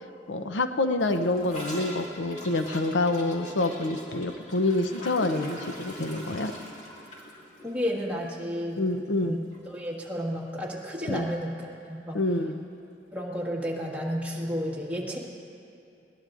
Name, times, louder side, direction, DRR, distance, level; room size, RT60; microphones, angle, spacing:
voice 1, 0.3-6.5 8.8-9.4 11.1-11.3 12.1-12.6, left 2 dB, 85° left, 8 dB, 0.7 m, -27 dB
Gurgling / Toilet flush, 1.0-9.3 9.5-9.7 9.9-10.4 10.7-10.8 11.0-11.1 12.1-12.2, left 1 dB, 40° left, 2.2 m, -43 dB
voice 2, 7.6-8.8 9.2-9.4 9.7-12.2 13.1-15.2, equal, 10° right, -5 dB, 1.8 m, -32 dB
21.0 x 18.5 x 2.6 m, 2.7 s
head